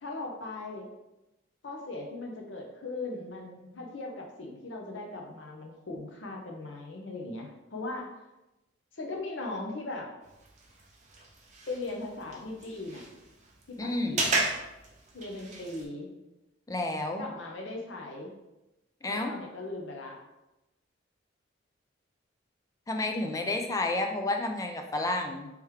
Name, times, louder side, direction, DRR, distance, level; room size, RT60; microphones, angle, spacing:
voice 1, 0.0-0.9 1.6-8.1 8.9-10.1 11.7-13.0 13.7-14.5 15.1-16.1 17.2-18.3 19.1-20.2, left 2 dB, 65° left, 1 dB, 0.7 m, -39 dB
sound 1, 10.2-15.9, right 2 dB, 35° right, 0.6 m, -35 dB
voice 2, 13.8-14.3 16.7-17.3 19.0-19.3 22.9-25.5, left 2 dB, 15° left, 4 dB, 0.3 m, -30 dB
3.4 x 3.2 x 3.1 m, 0.98 s
head